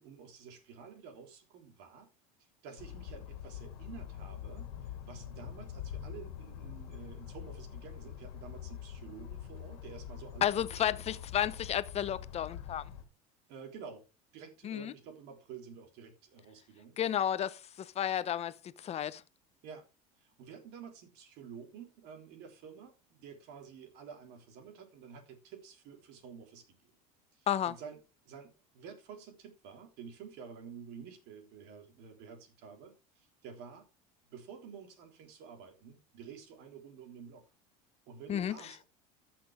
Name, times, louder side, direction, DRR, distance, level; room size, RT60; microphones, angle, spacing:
voice 1, 0.0-2.1 2.6-11.2 13.5-14.1 14.3-17.0 19.6-19.8 20.2-26.9 27.3-28.0 28.2-33.8 34.3-37.4 38.1-38.8, right 6 dB, 65° right, 3.5 m, -50 dB
sound 1, 2.8-13.0, left 9 dB, 85° left, 2.4 m, -45 dB
voice 2, 10.4-12.8 14.6-14.9 17.0-19.2 27.5-27.7 38.3-38.6, left 10 dB, 35° left, 0.8 m, -32 dB
13.5 x 6.1 x 3.6 m
supercardioid pair, 105°, 18 cm